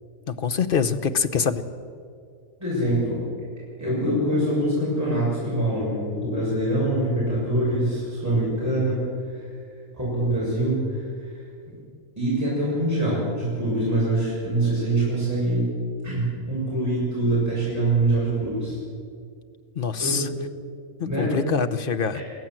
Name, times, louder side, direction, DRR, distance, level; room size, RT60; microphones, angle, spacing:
voice 1, 0.3-1.6 19.8-20.3 21.0-22.2, left 6 dB, 45° left, 10 dB, 0.9 m, -24 dB
voice 2, 2.6-3.2 3.8-9.5 9.9-11.4 12.2-15.7 16.0-18.8 20.0-20.2 21.0-21.4, right 1 dB, 10° right, -8 dB, 6.6 m, -24 dB
23.5 x 15.5 x 7.5 m, 2.3 s
omnidirectional pair, 1.5 m